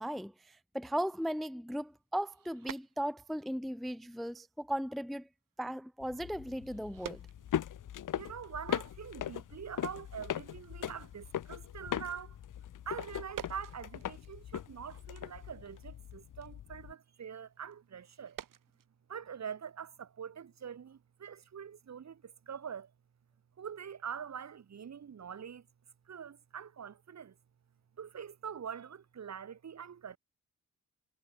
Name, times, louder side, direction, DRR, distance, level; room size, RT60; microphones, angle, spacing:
voice 1, 0.0-5.3 5.6-7.2, equal, ahead, 0.5 m, -37 dB
sound 1, 1.8-3.4 3.8-4.2 4.6-4.9 5.1-5.2 5.5-5.6 6.5-8.0 8.4-8.5 8.7-9.1 9.4-9.5 9.8-10.2 10.5-10.8 11.1-11.2 12.9-14.8 15.1-18.9, right 9 dB, 80° right, 6.4 m, -50 dB
Footsteps on Wood Floor, 6.0-16.9, left 10 dB, 75° left, 1.3 m, -40 dB
voice 2, 8.1-12.4 12.9-18.4 19.1-22.9 23.6-25.7 26.1-27.4 28.0-30.2, right 7 dB, 55° right, 4.1 m, -44 dB
wide cardioid pair, 135°, 32 cm